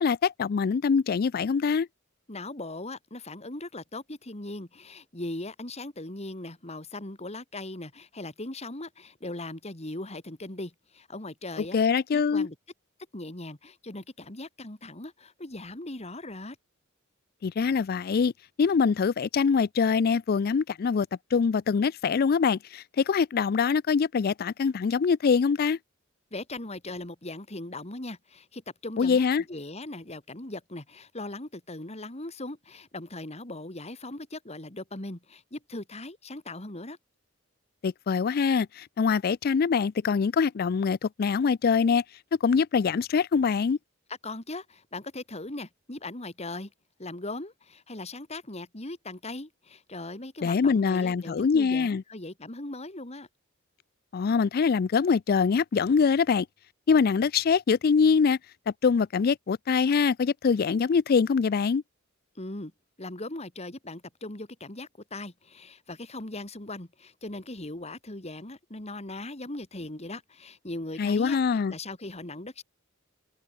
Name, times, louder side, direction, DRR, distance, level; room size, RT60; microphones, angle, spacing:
voice 1, 0.0-1.9 11.7-12.5 17.4-18.3 18.6-25.8 29.0-29.4 37.8-42.0 42.4-43.8 50.4-52.0 54.1-56.5 56.9-58.4 58.7-61.8 71.0-71.7, left 5 dB, 45° left, 0.4 m, -24 dB
voice 2, 2.3-11.8 12.1-12.6 13.1-16.6 26.3-37.0 44.1-46.7 47.0-53.3 62.4-62.7 63.0-72.6, left 2 dB, 30° left, 2.5 m, -39 dB
open air
head